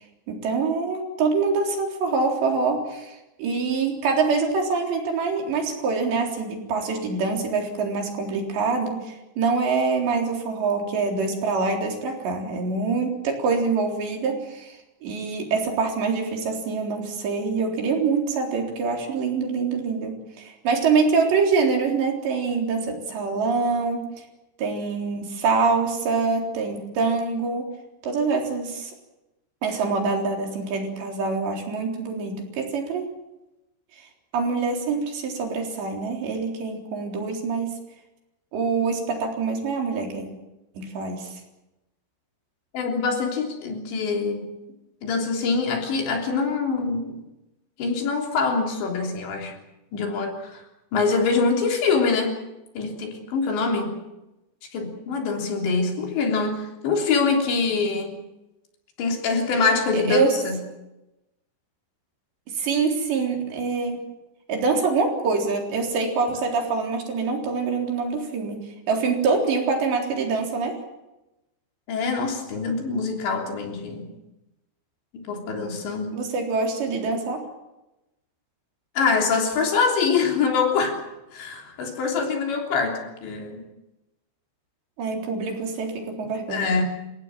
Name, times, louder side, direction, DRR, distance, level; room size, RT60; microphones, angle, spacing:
voice 1, 0.3-24.0 24.6-27.7 28.0-28.9 29.6-33.1 34.0-34.1 34.3-37.8 38.5-40.3 40.8-41.3 59.9-60.3 62.6-64.0 64.5-68.6 68.9-70.7 76.2-77.4 85.0-86.7, right 4 dB, 70° right, 1 dB, 6.0 m, -25 dB
voice 2, 42.7-44.6 45.0-47.2 47.8-49.6 49.9-50.6 50.9-52.4 52.8-54.0 54.7-58.2 59.0-60.6 71.9-74.1 75.1-76.2 79.0-81.0 81.3-83.6 86.2-86.8, left 4 dB, 75° left, 2 dB, 5.7 m, -24 dB
29.5 x 16.5 x 7.5 m, 0.96 s
omnidirectional pair, 5.2 m